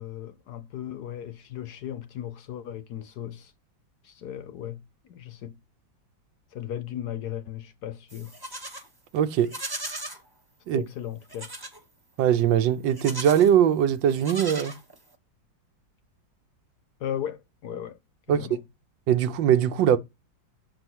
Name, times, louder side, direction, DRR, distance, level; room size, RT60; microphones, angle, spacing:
voice 1, 0.0-3.5 4.0-5.6 6.5-8.3 10.7-11.5 17.0-18.0 18.3-18.6, left 10 dB, 65° left, 1.2 m, -36 dB
Livestock farm animals working animals, 8.1-8.9 9.4-10.2 11.3-11.8 12.9-13.5 14.1-15.1, right 1 dB, 15° right, 0.8 m, -37 dB
voice 2, 9.1-9.5 10.7-10.8 12.2-14.7 18.3-18.5 19.1-20.0, right 9 dB, 75° right, 1.4 m, -21 dB
6.9 x 4.5 x 6.1 m
omnidirectional pair, 2.1 m